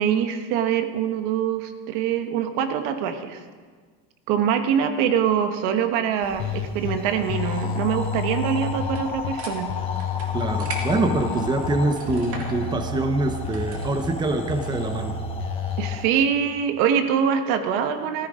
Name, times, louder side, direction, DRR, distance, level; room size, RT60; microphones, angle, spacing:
voice 1, 0.0-3.4 4.3-9.7 10.9-11.1 15.8-18.3, right 8 dB, 80° right, 8 dB, 1.3 m, -24 dB
sound 1, 6.2-16.1, left 4 dB, 15° left, 1.1 m, -35 dB
sound 2, 6.4-7.0 7.3-9.3 9.7-11.8 12.1-14.1 14.5-16.0, left 6 dB, 40° left, 0.8 m, -30 dB
sound 3, 8.8-14.0, right 3 dB, 45° right, 1.9 m, -40 dB
voice 2, 10.3-15.2, right 2 dB, 15° right, 7 dB, 0.8 m, -25 dB
14.5 x 13.0 x 5.0 m, 1.6 s
cardioid pair, 155°, 33 cm